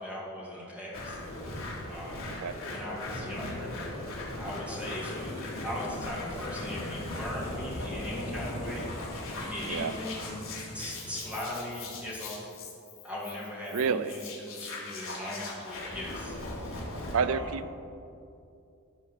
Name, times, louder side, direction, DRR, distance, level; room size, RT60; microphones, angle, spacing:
voice 1, 0.0-3.7 4.4-8.9 9.4-10.4 10.7-12.5 13.0-17.6, left 1 dB, 5° right, -6 dB, 2.3 m, -39 dB
sound 1, 0.9-17.2, left 2 dB, 65° left, 2.2 m, -39 dB
sound 2, 4.6-11.4, left 1 dB, 30° left, 1.6 m, -45 dB
voice 2, 13.7-14.1 17.1-17.7, right 6 dB, 70° right, 13 dB, 0.4 m, -29 dB
11.0 x 4.5 x 7.3 m, 2.6 s
head